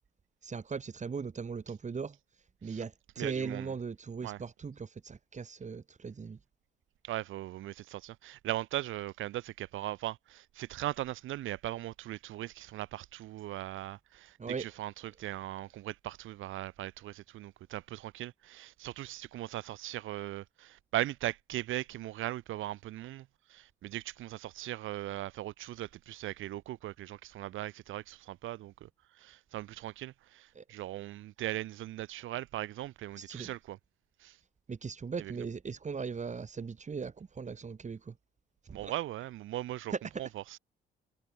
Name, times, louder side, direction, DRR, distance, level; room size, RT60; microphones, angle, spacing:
voice 1, 0.4-2.2 2.6-6.4 14.4-14.7 30.6-30.7 33.2-33.5 34.7-38.2 38.7-38.9 39.9-40.0, right 5 dB, 35° right, 3.9 m, -39 dB
voice 2, 3.2-3.7 4.2-4.4 7.0-28.9 29.2-33.8 34.2-34.4 35.2-35.3 38.7-39.9 40.2-40.6, right 15 dB, 85° right, 2.1 m, -39 dB
cardioid pair, 90°, 20 cm